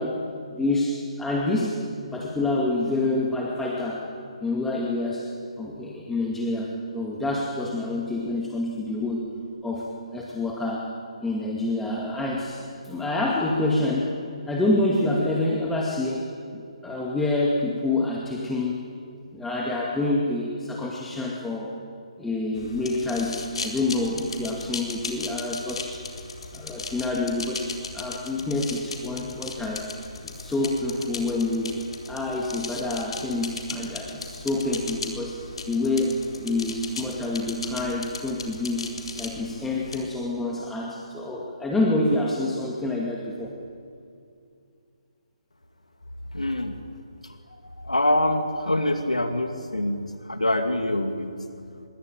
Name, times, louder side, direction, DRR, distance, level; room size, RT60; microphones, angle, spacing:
voice 1, 0.0-1.8 2.1-4.1 4.4-5.3 5.6-9.3 9.6-10.9 11.2-14.1 14.5-18.9 19.3-21.7 22.2-26.0 26.5-29.9 30.3-31.8 32.1-43.6, left 2 dB, 5° left, -2 dB, 2.3 m, -27 dB
sound 1, 22.6-40.0, left 4 dB, 55° left, 4.2 m, -37 dB
voice 2, 46.3-46.8 47.2-51.3, left 1 dB, 85° left, 6 dB, 2.4 m, -25 dB
25.0 x 22.0 x 9.2 m, 2.4 s
figure-of-eight pair, 140°, 4 cm